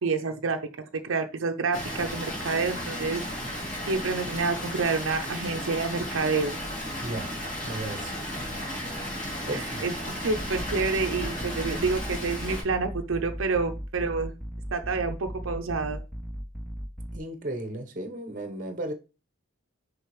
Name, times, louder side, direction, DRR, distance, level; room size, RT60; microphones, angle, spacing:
voice 1, 0.0-3.2 3.9-6.6 9.5-10.0 10.2-14.3 14.7-16.0, right 4 dB, 75° right, 0.6 m, -28 dB
Water, 1.7-12.6, equal, 35° left, 2.8 m, -34 dB
voice 2, 7.0-7.3 7.6-8.1 9.5-9.8 17.1-18.9, right 1 dB, 40° right, 1.0 m, -34 dB
sound 1, 10.3-17.2, equal, ahead, 0.5 m, -37 dB
6.7 x 5.2 x 3.2 m
head